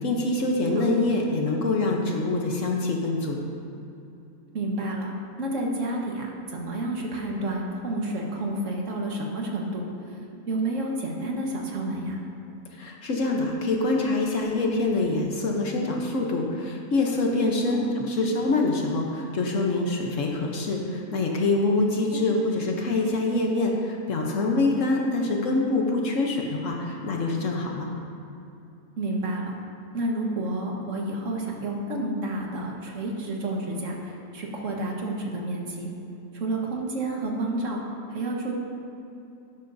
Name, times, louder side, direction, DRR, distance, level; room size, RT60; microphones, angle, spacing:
voice 1, 0.0-3.4 12.7-27.9, left 2 dB, 65° left, 0 dB, 1.2 m, -25 dB
voice 2, 4.5-5.1 5.4-10.2 10.5-12.2 17.6-18.0 22.1-22.2 25.1-25.2 29.0-29.5 29.9-35.9 36.3-37.8 38.1-38.5, right 1 dB, 60° right, -1 dB, 1.7 m, -30 dB
11.5 x 11.0 x 2.7 m, 2.8 s
omnidirectional pair, 1.5 m